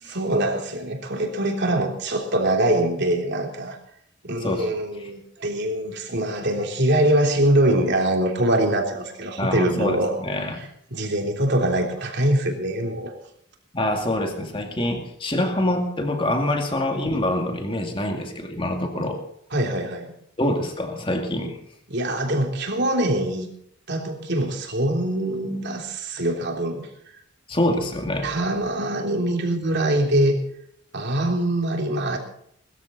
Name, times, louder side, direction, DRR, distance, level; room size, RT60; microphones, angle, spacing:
voice 1, 0.0-3.8 4.2-10.1 10.6-13.2 19.5-20.1 21.9-23.5 23.9-26.9 28.2-30.4 30.9-32.2, right 1 dB, 50° right, 2 dB, 3.4 m, -23 dB
voice 2, 9.4-10.6 13.7-19.2 20.4-21.6 27.5-28.3, left 1 dB, 25° left, 3 dB, 2.2 m, -25 dB
21.0 x 14.0 x 4.1 m, 0.68 s
head